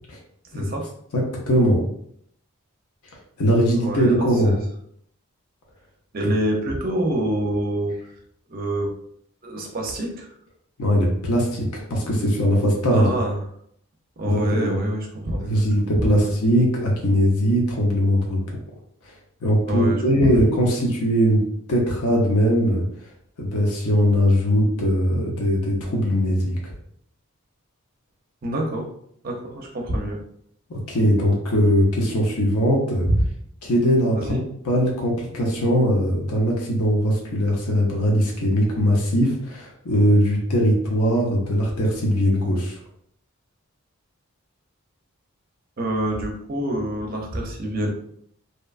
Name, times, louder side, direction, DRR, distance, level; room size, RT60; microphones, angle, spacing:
voice 1, 0.5-0.9 3.7-4.6 6.1-8.0 8.5-8.9 9.4-10.3 12.9-13.4 14.2-15.6 15.9-16.3 19.7-20.5 28.4-28.9 29.2-30.2 34.2-34.4 45.8-47.9, right 1 dB, 40° right, 1 dB, 0.5 m, -26 dB
voice 2, 1.1-1.8 3.4-4.6 10.8-13.1 14.2-14.8 15.5-18.4 19.4-21.4 21.7-22.8 23.4-26.7 30.9-33.1 33.6-34.4 34.6-42.8, equal, 80° left, -1 dB, 0.6 m, -20 dB
2.8 x 2.2 x 2.4 m, 0.68 s
head